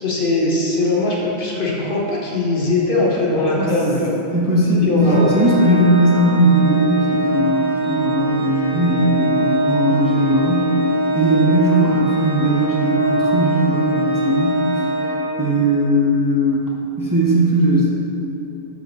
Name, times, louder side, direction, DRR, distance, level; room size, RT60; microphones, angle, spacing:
voice 1, 0.0-4.2 4.8-5.3 11.7-11.9, left 2 dB, 50° left, -4 dB, 1.2 m, -20 dB
voice 2, 4.3-10.8 11.1-14.8 15.4-16.7 17.0-17.9, right 1 dB, 20° right, -5 dB, 0.7 m, -18 dB
Organ, 5.0-15.8, right 2 dB, 35° right, 1.2 m, -22 dB
11.0 x 5.6 x 3.1 m, 2.9 s
omnidirectional pair, 1.3 m